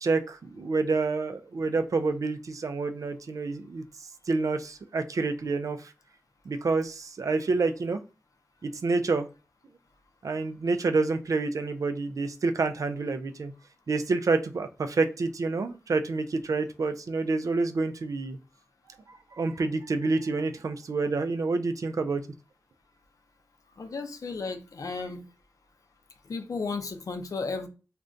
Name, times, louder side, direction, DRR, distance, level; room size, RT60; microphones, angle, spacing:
voice 1, 0.0-3.8 4.3-5.9 6.5-8.0 8.6-9.3 10.2-13.5 13.9-18.4 19.1-22.2, right 3 dB, 70° right, 8 dB, 0.4 m, -28 dB
voice 2, 23.8-25.2 26.3-27.7, left 4 dB, 75° left, 6 dB, 0.5 m, -34 dB
2.5 x 2.2 x 3.6 m, 0.32 s
cardioid pair, 45°, 6 cm